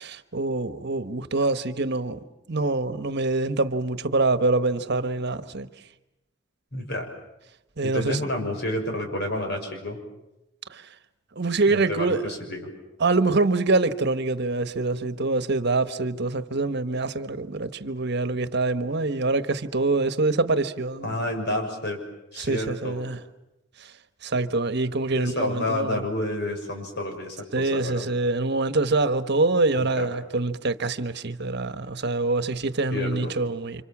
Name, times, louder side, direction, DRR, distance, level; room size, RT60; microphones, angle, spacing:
voice 1, 0.0-2.2 2.5-5.7 7.8-8.2 10.7-10.9 11.4-12.3 13.0-21.2 22.4-23.2 23.8-23.9 24.2-26.0 27.5-33.8, right 3 dB, 60° right, 1.3 m, -25 dB
voice 2, 6.7-7.1 7.8-10.0 11.7-12.7 21.0-22.0 22.3-23.0 25.1-28.1 29.7-30.1 32.9-33.3, left 1 dB, 60° left, 6.5 m, -30 dB
29.5 x 26.0 x 7.3 m
head